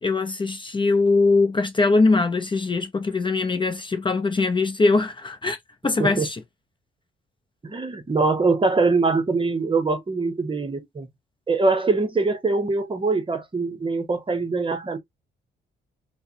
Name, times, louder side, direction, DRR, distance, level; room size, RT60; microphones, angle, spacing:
voice 1, 0.0-5.6 5.8-6.4, left 3 dB, 25° left, 0.6 m, -21 dB
voice 2, 7.6-11.1 11.5-15.0, right 3 dB, 25° right, 0.8 m, -23 dB
4.6 x 2.1 x 2.7 m
cardioid pair, 90°, 20 cm